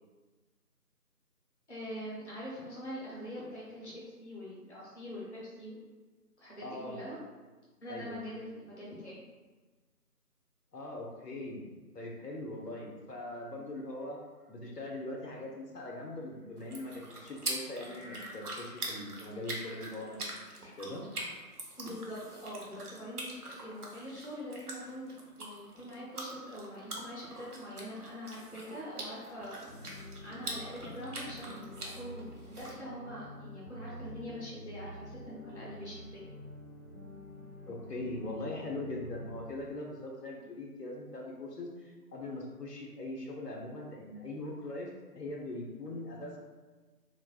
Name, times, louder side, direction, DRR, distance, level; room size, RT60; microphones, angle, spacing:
voice 1, 1.7-3.9 4.2-5.8 6.4-7.2 7.8-9.2 21.8-29.7 29.9-36.2, equal, 45° left, -7 dB, 0.6 m, -44 dB
voice 2, 6.6-7.0 7.9-8.2 10.7-11.6 11.9-14.2 14.5-21.0 37.7-46.4, left 2 dB, 85° left, -2 dB, 0.8 m, -41 dB
sound 1, 12.3-12.4 12.9-13.0 13.8-14.7 15.4-15.6 16.4-18.3, right 1 dB, 45° right, 1.1 m, -54 dB
sound 2, 16.6-32.7, right 2 dB, 70° right, 0.7 m, -44 dB
sound 3, 29.7-39.4, equal, ahead, 0.6 m, -48 dB
3.2 x 2.0 x 2.3 m, 1.3 s
figure-of-eight pair, 175°, 47 cm